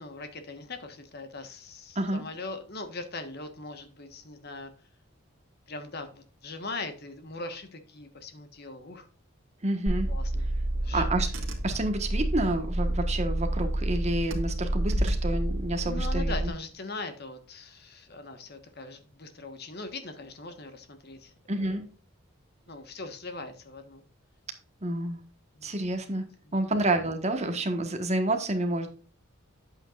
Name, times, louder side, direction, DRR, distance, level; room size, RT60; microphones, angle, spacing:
voice 1, 0.0-4.7 5.7-9.1 10.1-11.0 15.8-21.3 22.7-24.0 25.6-25.7, left 3 dB, 50° left, 8 dB, 1.3 m, -40 dB
voice 2, 9.6-10.1 10.9-11.3 11.6-16.5 21.5-21.8 24.8-25.2 25.6-26.2 26.5-28.9, right 1 dB, 30° right, 6 dB, 1.4 m, -29 dB
Car / Engine, 9.9-16.5, right 1 dB, 65° right, 1.9 m, -29 dB
9.7 x 8.1 x 2.5 m, 0.39 s
head